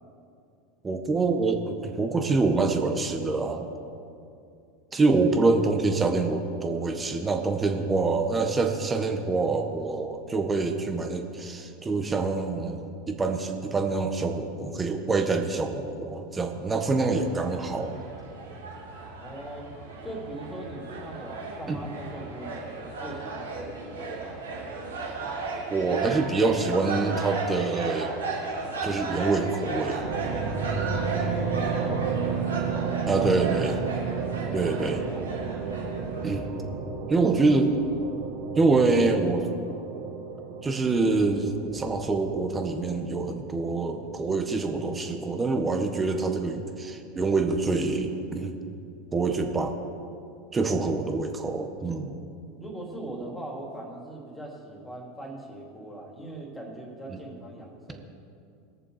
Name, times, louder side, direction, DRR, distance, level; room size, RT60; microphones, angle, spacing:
voice 1, 0.8-3.6 4.9-18.0 21.7-21.8 25.7-28.1 28.8-30.1 33.1-33.7 34.5-35.0 36.2-36.4 37.1-37.8 38.5-39.5 40.6-48.6 49.1-49.7 50.5-52.1 57.1-57.2, right 3 dB, 20° right, 5 dB, 1.5 m, -26 dB
sound 1, 16.7-36.5, right 3 dB, 90° right, 2.7 m, -35 dB
voice 2, 19.2-19.7 20.0-22.7 23.0-24.4 30.8-32.5 33.2-33.3 34.4-34.6 35.1-35.3 50.6-50.9 52.6-58.1, right 1 dB, 10° left, -1 dB, 3.4 m, -40 dB
sound 2, 30.0-44.4, right 5 dB, 60° right, 2.4 m, -32 dB
21.0 x 7.0 x 5.1 m, 2.5 s
hypercardioid pair, 85°, 0 cm